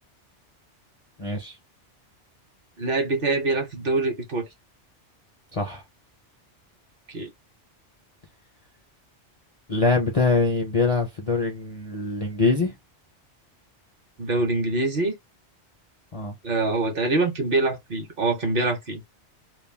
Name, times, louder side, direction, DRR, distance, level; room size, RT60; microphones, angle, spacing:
voice 1, 1.2-1.5 5.5-5.8 9.7-12.7 16.1-16.3, left 3 dB, 45° left, 0.5 m, -23 dB
voice 2, 2.8-4.5 7.1-7.3 14.2-15.1 16.4-19.0, right 2 dB, 55° right, 0.8 m, -24 dB
2.3 x 2.1 x 3.1 m
omnidirectional pair, 1.2 m